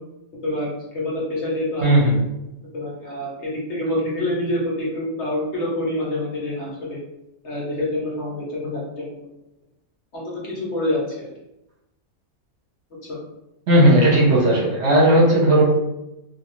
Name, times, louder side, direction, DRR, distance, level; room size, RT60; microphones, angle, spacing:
voice 1, 0.4-2.1 2.7-7.0 7.4-9.3 10.1-11.3 13.0-13.2, left 1 dB, 60° left, -4 dB, 0.9 m, -27 dB
voice 2, 1.8-2.2 13.7-15.6, right 1 dB, 55° right, -6 dB, 1.0 m, -15 dB
2.5 x 2.4 x 3.0 m, 0.92 s
omnidirectional pair, 1.5 m